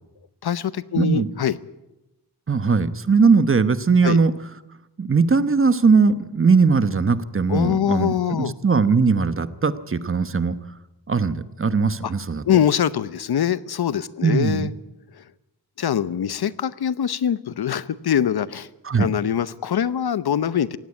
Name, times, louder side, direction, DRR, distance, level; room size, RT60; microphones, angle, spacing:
voice 1, 0.4-1.6 4.0-4.2 7.5-8.5 12.0-12.1 12.4-14.7 15.2-15.3 15.8-18.7 19.0-20.8, left 9 dB, 65° left, 16 dB, 0.9 m, -23 dB
voice 2, 1.0-1.3 2.5-4.3 5.0-10.6 11.1-12.4 14.2-14.7 18.8-19.1, right 4 dB, 30° right, 13 dB, 1.0 m, -19 dB
18.5 x 16.5 x 9.7 m, 0.96 s
wide cardioid pair, 130°, 40 cm